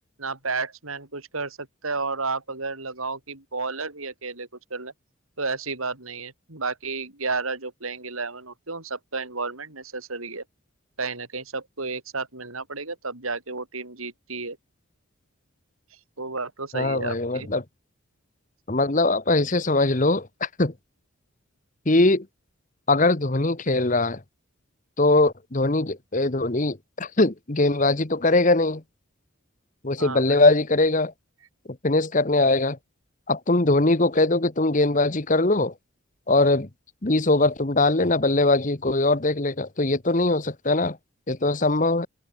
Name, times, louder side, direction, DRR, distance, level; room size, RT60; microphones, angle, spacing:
voice 1, 0.2-4.9 5.4-10.4 11.0-14.6 16.2-17.5 30.0-30.4, right 4 dB, 90° right, 5.2 m, -32 dB
voice 2, 16.7-17.6 18.7-20.7 21.8-22.3 22.9-24.2 25.0-28.8 29.8-31.1 31.8-32.8 33.3-35.7 36.3-36.7 37.0-41.0 41.3-42.1, left 2 dB, 35° left, 1.3 m, -21 dB
head